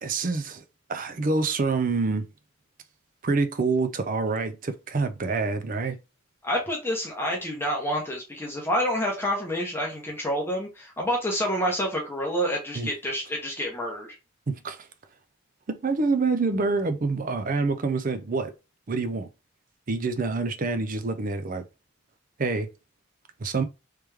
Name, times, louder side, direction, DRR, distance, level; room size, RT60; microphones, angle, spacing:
voice 1, 0.0-0.6 0.9-2.2 3.2-6.0 12.7-12.9 14.5-14.8 15.7-18.5 18.9-19.3 19.9-21.6 22.4-22.7 23.4-23.6, right 3 dB, 40° right, 0.5 m, -26 dB
voice 2, 6.4-14.2, equal, 10° left, 0.8 m, -28 dB
3.3 x 3.0 x 3.4 m
head